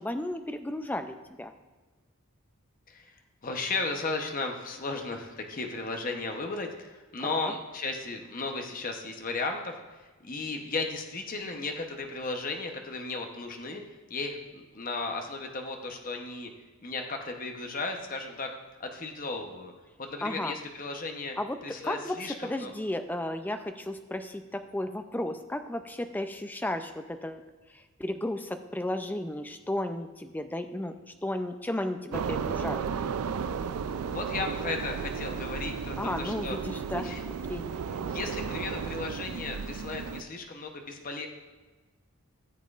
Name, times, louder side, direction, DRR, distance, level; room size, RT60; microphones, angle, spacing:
voice 1, 0.0-1.5 7.2-7.5 20.2-20.5 21.4-21.6 21.8-30.9 31.2-32.8 36.0-37.6, left 1 dB, 10° left, 8 dB, 0.3 m, -34 dB
voice 2, 3.4-13.8 14.1-16.5 16.8-19.7 20.0-21.4 21.6-22.7 34.1-36.6 37.0-37.2 38.1-41.3, left 3 dB, 40° left, 3 dB, 0.8 m, -35 dB
sound 1, 32.1-40.2, right 6 dB, 80° right, 0.4 m, -34 dB
13.5 x 7.4 x 2.4 m, 1.3 s
head